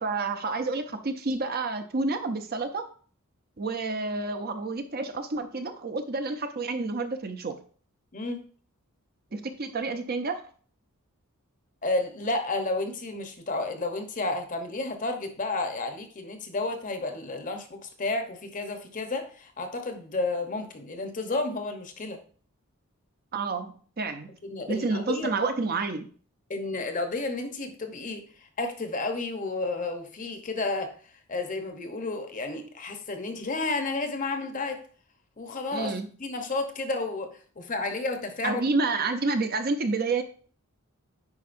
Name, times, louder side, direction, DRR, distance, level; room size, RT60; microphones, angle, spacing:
voice 1, 0.0-2.9 3.6-7.6 9.3-10.4 23.3-24.3 24.7-26.1 35.7-36.1 38.4-40.2, right 3 dB, 45° right, 7 dB, 0.6 m, -29 dB
voice 2, 11.8-22.2 24.4-25.3 26.5-31.0 31.3-34.8 35.4-35.9 36.2-38.6, left 2 dB, 35° left, 6 dB, 0.9 m, -31 dB
9.6 x 4.7 x 2.6 m, 0.44 s
head